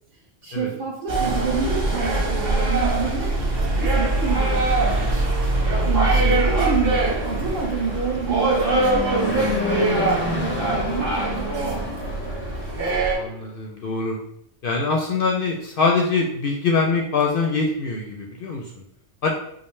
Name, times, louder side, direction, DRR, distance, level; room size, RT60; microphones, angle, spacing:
voice 1, 0.4-3.5 3.8-5.2 5.8-9.6 10.4-12.2, right 5 dB, 50° right, -2 dB, 0.8 m, -28 dB
sound 1, 1.1-13.2, right 2 dB, 85° right, 1.4 m, -22 dB
Fixed-wing aircraft airplane, 6.2-13.4, left 2 dB, 15° left, 0.4 m, -30 dB
voice 2, 13.1-14.2 14.6-18.6 19.2-19.3, left 4 dB, 60° left, 0 dB, 0.6 m, -23 dB
4.9 x 2.1 x 3.1 m, 0.73 s
omnidirectional pair, 1.3 m